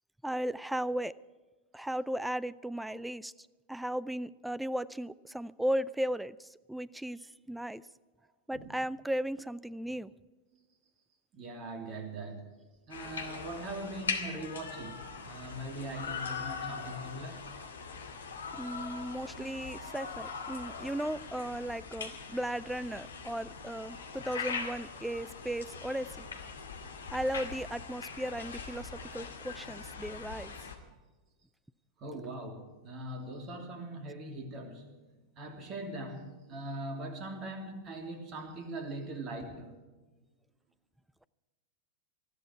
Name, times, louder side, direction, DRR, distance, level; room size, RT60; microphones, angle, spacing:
voice 1, 0.2-1.1 1.7-3.3 3.7-7.8 8.5-10.1 18.6-26.2 27.1-30.5, right 1 dB, 5° right, 20 dB, 0.5 m, -36 dB
voice 2, 11.3-12.4 12.9-17.5 19.3-19.5 32.0-34.9 35.4-39.7, right 1 dB, 35° right, 5 dB, 3.0 m, -41 dB
sound 1, 12.9-30.8, left 5 dB, 70° left, 2.1 m, -41 dB
20.0 x 14.0 x 4.6 m, 1.2 s
figure-of-eight pair, 90°, 0 cm